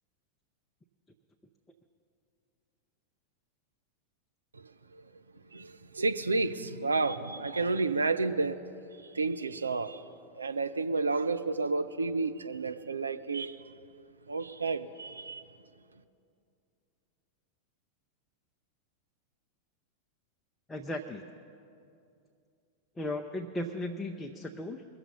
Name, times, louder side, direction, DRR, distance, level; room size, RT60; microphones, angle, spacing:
voice 1, 5.5-8.6 9.1-10.0 10.3-13.6 14.3-15.4, right 3 dB, 75° right, 9 dB, 0.5 m, -31 dB
voice 2, 20.7-21.2 23.0-24.9, left 1 dB, 10° left, 3 dB, 0.6 m, -36 dB
21.5 x 7.3 x 5.4 m, 2.5 s
figure-of-eight pair, 90°, 0 cm